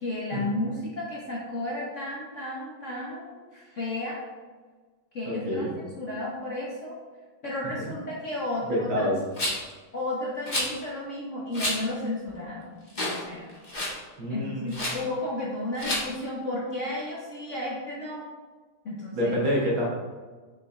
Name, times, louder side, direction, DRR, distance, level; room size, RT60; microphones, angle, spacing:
voice 1, 0.0-4.2 5.1-5.7 6.0-7.0 7.4-9.1 9.9-13.5 14.3-18.3 18.8-19.4, left 1 dB, 45° left, -6 dB, 1.2 m, -33 dB
voice 2, 5.3-5.7 8.6-9.1 14.2-14.7 19.1-19.9, equal, 65° right, -5 dB, 2.4 m, -27 dB
Rattle, 9.4-9.7 10.5-10.7 11.5-11.8 12.3-12.4 12.9-13.2 13.5-14.0 14.7-15.0 15.8-16.0, left 1 dB, 25° left, 1.4 m, -29 dB
6.9 x 5.4 x 3.3 m, 1.4 s
omnidirectional pair, 2.4 m